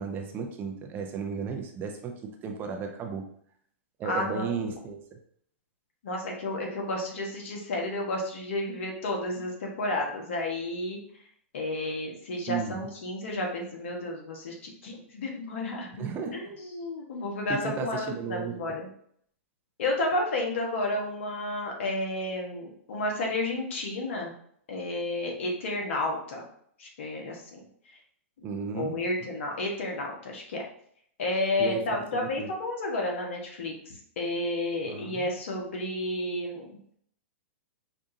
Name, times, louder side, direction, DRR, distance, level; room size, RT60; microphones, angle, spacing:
voice 1, 0.0-3.2 4.0-5.0 12.5-12.8 16.0-16.5 17.5-18.5 28.4-29.0 31.6-32.5 34.9-35.3, right 5 dB, 30° right, 3 dB, 0.6 m, -34 dB
voice 2, 4.0-4.7 6.0-11.0 11.5-16.1 16.3-18.9 19.8-24.3 24.7-26.5 26.8-27.6 27.9-28.0 28.4-30.6 31.2-37.0, left 2 dB, 65° left, 0 dB, 1.2 m, -31 dB
5.0 x 2.5 x 2.7 m, 0.64 s
hypercardioid pair, 115°, 7 cm